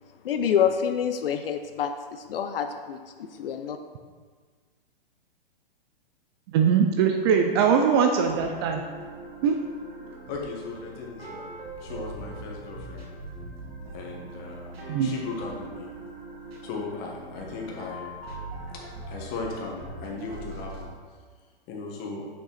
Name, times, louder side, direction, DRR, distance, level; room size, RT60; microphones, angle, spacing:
voice 1, 0.2-3.0 3.4-3.8, left 8 dB, 70° left, 7 dB, 0.6 m, -27 dB
voice 2, 6.5-8.8 9.4-9.6 14.9-15.1, right 7 dB, 25° right, 4 dB, 0.4 m, -21 dB
sound 1, 8.3-20.9, right 2 dB, 85° right, 1.7 m, -41 dB
voice 3, 10.3-11.6 11.8-13.1 13.9-15.9 16.6-18.1 19.1-20.9 21.7-22.3, left 4 dB, 35° left, -1 dB, 1.6 m, -37 dB
6.5 x 5.5 x 4.2 m, 1.5 s
hypercardioid pair, 130°, 30 cm